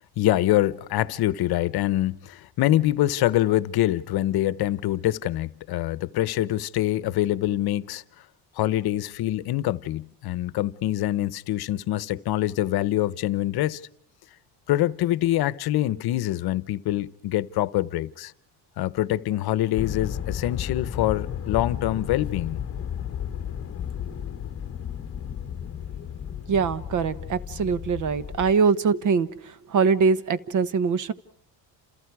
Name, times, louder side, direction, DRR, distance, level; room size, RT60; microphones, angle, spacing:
voice 1, 0.2-8.0 8.6-13.8 14.7-18.3 18.8-22.6, left 14 dB, 65° left, 0.9 m, -25 dB
sound 1, 19.8-28.5, left 9 dB, 35° left, 1.4 m, -33 dB
voice 2, 26.5-29.3 29.7-31.1, right 5 dB, 45° right, 1.1 m, -22 dB
30.0 x 28.0 x 4.8 m
cardioid pair, 150°, 41 cm